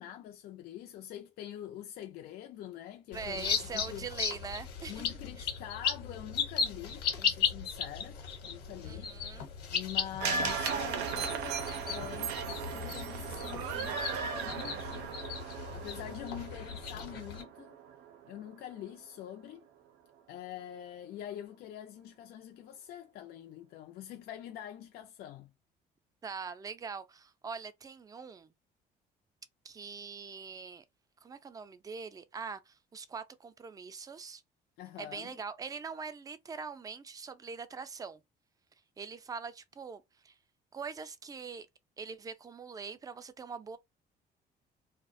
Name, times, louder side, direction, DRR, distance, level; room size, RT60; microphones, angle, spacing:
voice 1, 0.0-4.1 4.9-9.1 9.7-15.4 15.7-17.8 18.3-19.7 20.3-25.5 34.8-35.3, left 11 dB, 65° left, 0.4 m, -45 dB
sound 1, 3.1-17.4, left 7 dB, 85° left, 1.0 m, -36 dB
voice 2, 3.1-5.1 5.4-5.5 8.8-9.5 26.2-28.5 29.6-30.8 31.2-34.4 35.0-38.2 39.0-40.4 40.7-41.7 42.0-43.8, right 5 dB, 20° right, 0.4 m, -43 dB
sound 2, 10.2-18.5 18.8-18.9, right 6 dB, 85° right, 0.5 m, -37 dB
2.3 x 2.0 x 2.5 m
cardioid pair, 110°, 17 cm